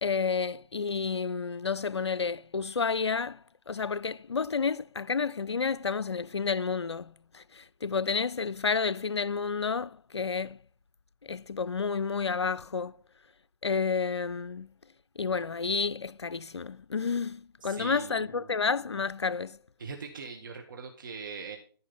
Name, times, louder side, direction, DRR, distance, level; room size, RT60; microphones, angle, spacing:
voice 1, 0.0-10.6 11.2-13.0 13.6-14.7 15.2-19.6, left 5 dB, 85° left, 0.4 m, -30 dB
voice 2, 17.6-18.5 19.8-21.6, right 5 dB, 50° right, 1.7 m, -41 dB
14.0 x 5.1 x 5.7 m
figure-of-eight pair, 140°, 14 cm